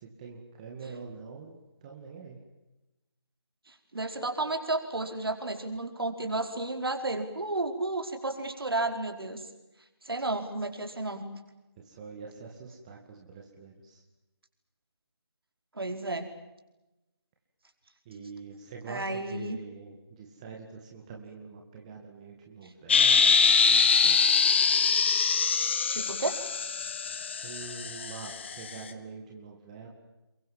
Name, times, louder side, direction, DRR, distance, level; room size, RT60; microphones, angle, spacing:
voice 1, 0.2-2.4 11.8-14.0 18.1-24.2 27.2-29.9, right 5 dB, 15° right, 0 dB, 2.2 m, -45 dB
voice 2, 3.7-9.4 10.0-11.3 15.7-16.3 18.9-19.6 25.9-26.4, right 2 dB, 60° right, 4 dB, 4.9 m, -32 dB
sound 1, 22.9-28.7, left 6 dB, 25° left, 1.4 m, -24 dB
29.0 x 23.5 x 7.5 m, 1.0 s
figure-of-eight pair, 165°, 14 cm